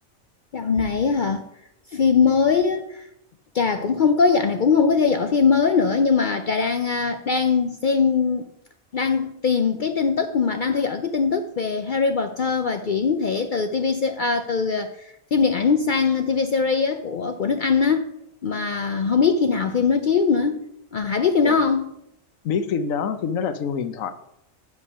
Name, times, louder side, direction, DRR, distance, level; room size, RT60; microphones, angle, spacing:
voice 1, 0.5-1.5 1.9-3.0 3.5-8.5 8.9-18.1 18.4-21.9, left 5 dB, 60° left, 7 dB, 0.5 m, -21 dB
voice 2, 22.4-24.1, left 6 dB, 80° left, 10 dB, 1.1 m, -26 dB
8.1 x 5.3 x 5.5 m, 0.78 s
omnidirectional pair, 1.4 m